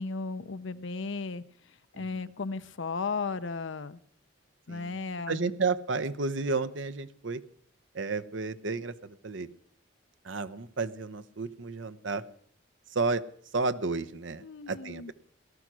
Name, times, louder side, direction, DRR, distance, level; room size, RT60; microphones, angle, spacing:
voice 1, 0.0-4.0 4.7-5.5 14.4-15.1, left 4 dB, 70° left, 13 dB, 0.7 m, -35 dB
voice 2, 5.3-7.4 7.9-9.5 10.2-12.2 12.9-13.2 13.5-15.1, right 3 dB, 65° right, 13 dB, 0.8 m, -32 dB
18.0 x 12.5 x 6.2 m, 0.62 s
head